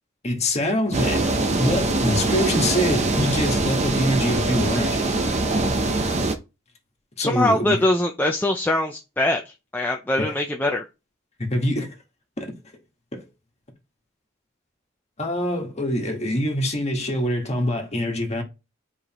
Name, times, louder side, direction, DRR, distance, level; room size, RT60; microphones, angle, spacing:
voice 1, 0.2-1.3 1.6-5.1 7.2-7.7 10.2-10.3 11.4-11.9 12.4-12.5 13.1-13.2 15.2-18.4, left 1 dB, 30° left, 1.6 m, -24 dB
sound 1, 0.9-6.3, right 2 dB, 35° right, 0.8 m, -23 dB
voice 2, 7.2-9.4 9.7-10.8, left 1 dB, 10° left, 0.5 m, -22 dB
9.6 x 4.9 x 3.0 m
head